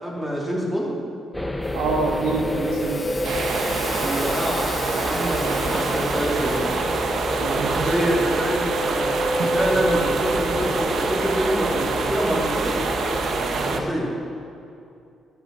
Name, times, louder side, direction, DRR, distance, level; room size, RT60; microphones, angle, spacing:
voice 1, 0.0-0.9 4.0-6.7 7.7-12.9 13.5-14.1, equal, 10° right, -3 dB, 3.0 m, -26 dB
sound 1, 1.3-13.9, left 1 dB, 5° left, 0.9 m, -28 dB
sound 2, 1.6-7.8, left 3 dB, 35° left, 1.3 m, -38 dB
voice 2, 1.7-3.2 6.0-6.1 7.4-8.2 13.7-13.9, right 3 dB, 90° right, 1 dB, 1.8 m, -27 dB
sound 3, 3.2-13.8, right 4 dB, 60° right, 1.1 m, -26 dB
11.5 x 8.0 x 7.7 m, 2.6 s
cardioid pair, 90°, 0 cm